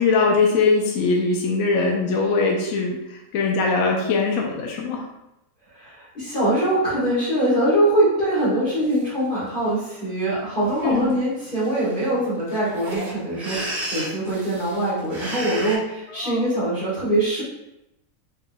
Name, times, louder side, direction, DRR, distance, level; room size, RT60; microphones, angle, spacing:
voice 1, 0.0-5.1 10.8-11.2 16.1-16.5, left 4 dB, 70° left, 0 dB, 0.9 m, -21 dB
voice 2, 5.7-17.4, right 1 dB, 35° left, -13 dB, 1.6 m, -23 dB
sound 1, 8.9-9.0 9.5-9.9 10.6-10.8 11.1-11.2 11.4-15.8, right 1 dB, 45° right, 1.0 m, -33 dB
4.4 x 3.4 x 2.2 m, 0.88 s
omnidirectional pair, 1.6 m